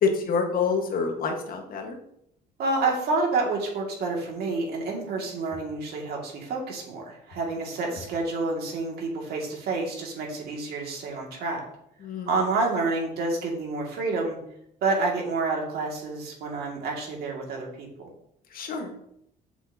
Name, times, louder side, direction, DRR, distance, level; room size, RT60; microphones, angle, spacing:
voice 1, 0.0-2.0 12.0-12.3 18.5-18.9, left 5 dB, 60° left, 3 dB, 1.6 m, -27 dB
voice 2, 2.6-11.6 12.3-14.4 14.8-18.1, right 3 dB, 70° right, -1 dB, 2.3 m, -28 dB
8.1 x 6.1 x 2.9 m, 0.75 s
cardioid pair, 110°, 17 cm